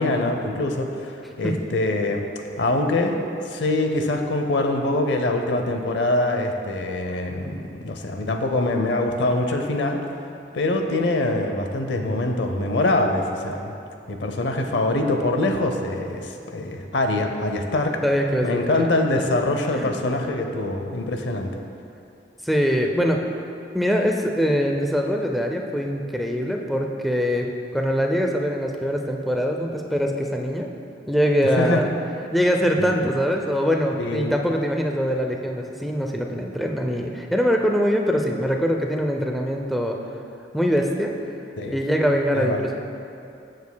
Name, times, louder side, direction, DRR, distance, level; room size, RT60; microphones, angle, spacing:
voice 1, 0.0-2.2 2.6-3.2 3.4-10.0 10.5-13.7 14.1-18.0 18.4-21.5 31.4-31.8 32.8-33.0 34.0-34.4 41.6-41.7 42.3-42.6, left 2 dB, 80° left, 4 dB, 0.6 m, -24 dB
voice 2, 18.0-18.9 19.7-20.0 22.4-23.2 23.7-30.7 31.1-31.9 32.3-40.0 40.5-41.1 41.7-42.8, equal, ahead, 1 dB, 0.5 m, -23 dB
14.0 x 6.5 x 2.2 m, 2.7 s
head